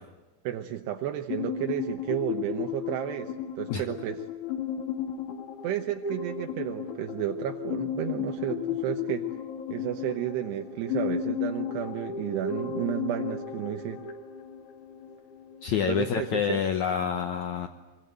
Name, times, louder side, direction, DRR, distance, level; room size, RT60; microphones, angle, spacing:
voice 1, 0.4-4.2 5.6-9.3 9.7-14.0 15.7-16.6, right 12 dB, 80° right, 4 dB, 3.1 m, -32 dB
sound 1, 1.3-15.7, left 8 dB, 50° left, 3.2 m, -34 dB
voice 2, 15.6-17.7, left 8 dB, 75° left, 6 dB, 1.7 m, -27 dB
24.5 x 24.0 x 9.2 m, 1.1 s
omnidirectional pair, 4.9 m